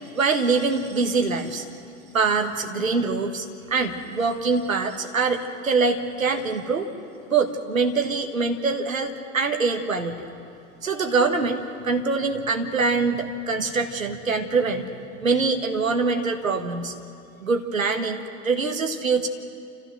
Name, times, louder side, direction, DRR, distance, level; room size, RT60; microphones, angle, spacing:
voice 1, 0.1-1.6 2.1-6.9 7.3-10.2 10.8-14.9 15.2-16.9 17.4-19.3, right 4 dB, 85° right, 5 dB, 1.3 m, -24 dB
29.5 x 15.0 x 6.3 m, 2.5 s
figure-of-eight pair, 65°, 40 cm